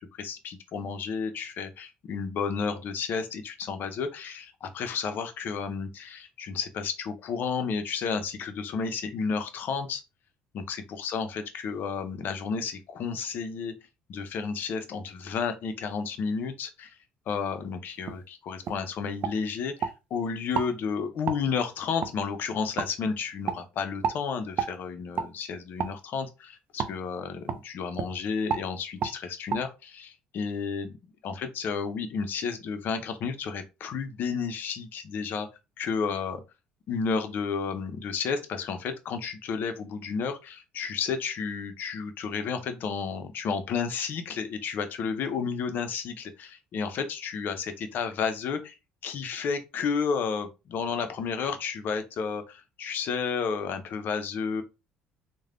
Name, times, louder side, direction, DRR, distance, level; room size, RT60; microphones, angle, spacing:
voice 1, 0.2-10.0 10.5-13.7 14.1-16.9 17.3-31.0 31.2-35.5 35.8-36.4 36.9-48.8 49.0-54.6, left 5 dB, 60° left, 9 dB, 0.6 m, -32 dB
sound 1, 18.1-18.2 18.6-18.8 19.2-19.9 20.5-20.7 21.3-21.4 22.0-22.1 22.8-22.9 23.4-23.6 24.0-24.2 24.6-24.7 25.1-25.3 25.8-26.0 26.8-26.9 27.5-27.6 27.9-28.1 28.5-28.7 29.0-29.1 29.5-29.6, right 7 dB, 55° right, 0.4 m, -30 dB
3.2 x 2.1 x 2.5 m, 0.27 s
supercardioid pair, 75°, 4 cm